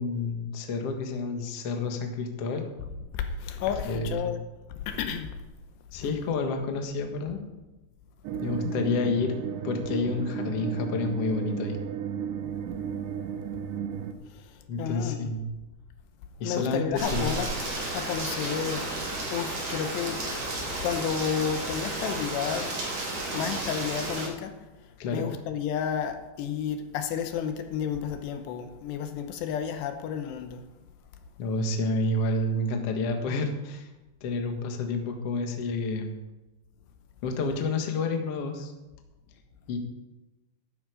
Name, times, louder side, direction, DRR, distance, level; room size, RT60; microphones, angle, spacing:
voice 1, 0.0-2.7 3.8-4.3 5.9-7.4 8.4-9.3 9.6-11.8 14.7-15.4 16.4-17.4 25.0-25.2 31.4-33.9 34.2-36.1 37.2-38.7 39.7-39.8, left 3 dB, 60° left, 1.6 m, -29 dB
voice 2, 3.1-4.4 4.7-5.4 6.0-6.1 14.3-14.5 14.8-15.3 16.4-17.5 17.9-18.9 19.3-20.2 20.8-22.8 23.1-24.6 25.1-30.6, left 7 dB, 80° left, 3.0 m, -31 dB
sound 1, 8.2-14.1, right 8 dB, 80° right, 1.9 m, -34 dB
Rain, 17.0-24.3, right 2 dB, 40° right, 3.2 m, -32 dB
13.0 x 11.5 x 5.1 m
omnidirectional pair, 5.0 m